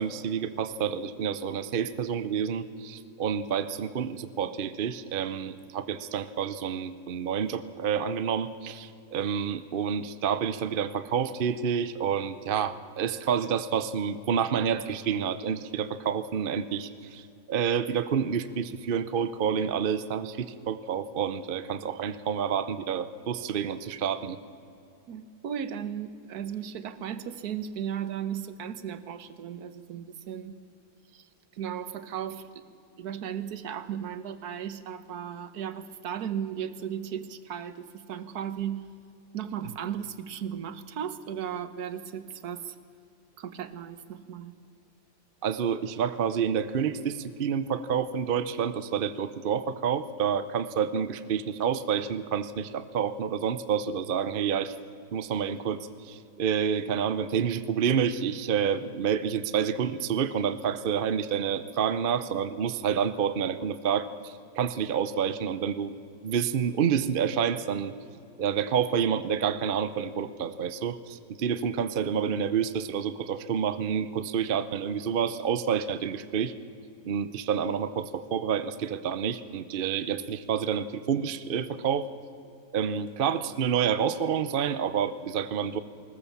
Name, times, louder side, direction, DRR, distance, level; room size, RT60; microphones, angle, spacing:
voice 1, 0.0-24.4 45.4-54.8 55.1-65.9 66.2-67.9 68.4-76.5 77.0-82.1 82.7-85.8, right 7 dB, 55° right, 13 dB, 0.6 m, -28 dB
voice 2, 25.1-30.6 31.1-31.3 31.5-38.9 39.3-42.7 43.4-44.5, right 9 dB, 70° right, 13 dB, 1.5 m, -36 dB
20.5 x 19.5 x 7.2 m, 2.6 s
omnidirectional pair, 1.8 m